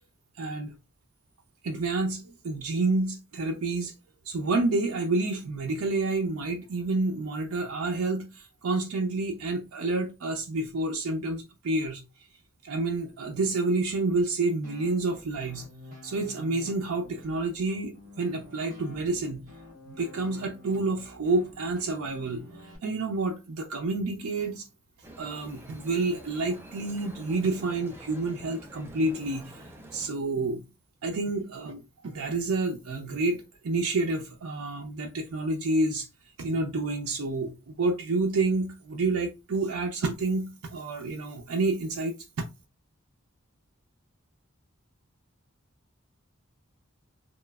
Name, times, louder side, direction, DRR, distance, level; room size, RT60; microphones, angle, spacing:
voice 1, 0.4-0.7 1.6-3.9 4.3-12.0 12.6-15.7 16.0-19.5 20.0-22.4 22.8-24.6 25.2-29.5 29.9-30.6 31.0-36.1 36.4-42.4, right 3 dB, 85° right, 0.5 m, -29 dB
sound 1, 14.6-22.8, left 1 dB, 40° right, 1.3 m, -49 dB
sound 2, 25.0-30.1, equal, 10° right, 0.4 m, -47 dB
3.0 x 2.4 x 2.3 m
head